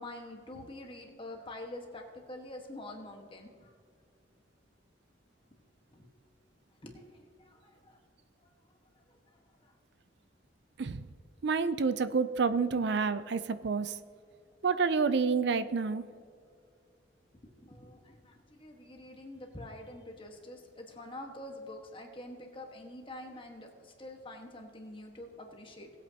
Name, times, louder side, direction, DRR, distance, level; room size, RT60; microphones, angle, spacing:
voice 1, 0.0-3.7 5.9-6.1 6.8-8.0 9.6-9.7 12.5-12.8 17.4-25.9, left 1 dB, 30° left, 2 dB, 1.4 m, -46 dB
voice 2, 11.4-13.9 14.6-16.0, right 5 dB, 65° right, 13 dB, 0.5 m, -28 dB
18.5 x 8.5 x 2.9 m, 2.2 s
head